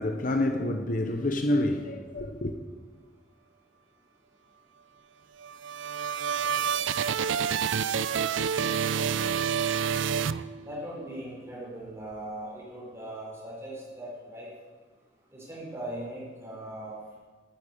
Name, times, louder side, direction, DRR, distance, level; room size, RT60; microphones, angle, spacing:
voice 1, 0.0-2.5, left 1 dB, 45° left, 0.9 m, -28 dB
sound 1, 5.4-11.0, right 7 dB, 85° right, 0.4 m, -28 dB
voice 2, 10.6-14.5 15.3-17.2, right 1 dB, 15° right, 5.0 m, -39 dB
10.5 x 10.5 x 8.4 m
head